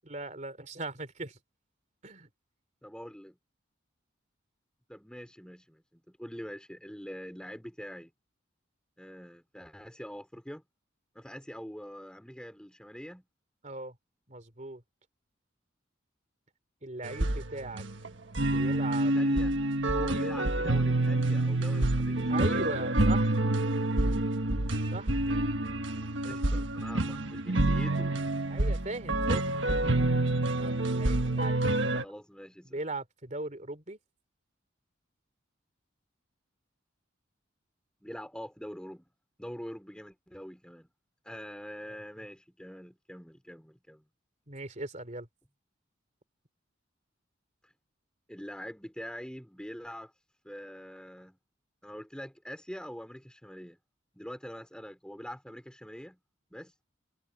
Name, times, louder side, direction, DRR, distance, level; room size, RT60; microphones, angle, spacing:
voice 1, 0.0-1.4 2.0-2.3 13.6-13.9 14.3-14.8 16.8-17.8 18.4-19.1 20.1-20.2 22.3-23.4 24.9-25.1 26.3-26.6 28.5-29.8 30.6-32.0 32.6-34.0 44.5-45.3, right 2 dB, 40° right, 3.2 m, -39 dB
voice 2, 2.8-3.4 4.9-8.1 9.0-10.6 11.1-13.3 19.1-19.5 19.9-22.8 26.2-28.1 32.0-32.8 38.0-39.1 39.4-40.9 41.2-44.0 47.6-47.7 48.3-50.1 50.4-51.4 51.8-53.8 54.1-56.2 56.5-56.7, equal, 5° left, 4.0 m, -44 dB
sound 1, 17.0-32.0, right 2 dB, 70° right, 1.5 m, -28 dB
head